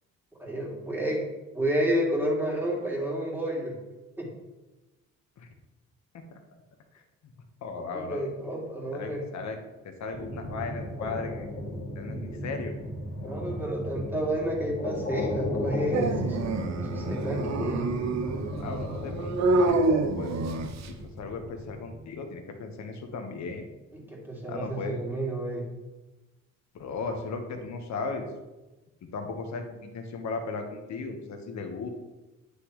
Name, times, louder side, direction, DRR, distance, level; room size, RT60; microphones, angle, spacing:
voice 1, 0.4-1.2 1.5-3.7 4.2-4.3 7.8-9.2 13.2-16.6 16.9-17.9 24.1-25.7, right 1 dB, 5° right, -4 dB, 2.8 m, -30 dB
voice 2, 7.6-8.3 8.9-9.6 9.8-11.5 11.9-12.8 18.6-20.4 20.8-23.7 24.5-25.0 26.7-28.3 29.1-31.9, left 4 dB, 65° left, 4 dB, 1.4 m, -36 dB
sound 1, 10.1-22.0, left 1 dB, 30° left, 2.1 m, -35 dB
Dog, 15.9-21.0, right 2 dB, 60° right, 0.8 m, -27 dB
9.4 x 6.8 x 3.2 m, 1.1 s
cardioid pair, 90°, 30 cm